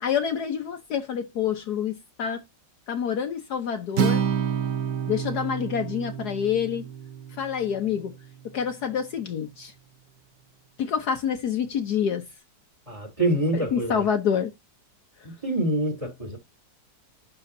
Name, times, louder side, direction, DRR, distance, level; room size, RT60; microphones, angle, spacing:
voice 1, 0.0-2.4 2.9-4.2 5.1-6.9 7.4-8.1 8.4-9.7 10.8-12.2 13.5-14.5, left 8 dB, 65° left, 1.4 m, -27 dB
Acoustic guitar, 3.9-8.2, right 8 dB, 60° right, 1.4 m, -29 dB
voice 2, 12.9-14.1 15.2-16.4, right 1 dB, 15° right, 3.3 m, -26 dB
11.5 x 4.2 x 2.7 m
omnidirectional pair, 2.0 m